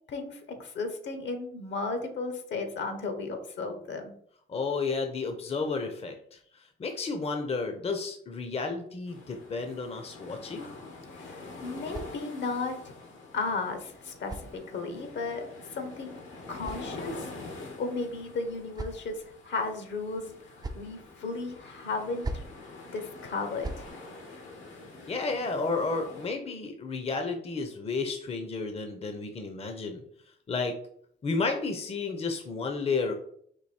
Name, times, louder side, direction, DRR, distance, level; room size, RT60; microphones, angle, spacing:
voice 1, 0.1-4.1 11.1-12.9 13.3-16.2 16.5-17.3 17.8-20.4 20.7-22.4 22.9-23.9, left 3 dB, 65° left, 6 dB, 1.1 m, -34 dB
voice 2, 4.5-10.7 25.1-30.0 30.5-30.7 31.2-33.1, left 4 dB, 30° left, 5 dB, 0.7 m, -32 dB
sound 1, 9.1-26.3, left 3 dB, 80° left, 1.4 m, -46 dB
sound 2, 11.5-12.7 13.7-15.1 16.1-17.4 18.3-19.3 20.2-21.0 22.0-22.6 23.3-23.9, right 2 dB, 20° right, 0.5 m, -42 dB
4.6 x 2.7 x 4.2 m, 0.64 s
cardioid pair, 90°, 20 cm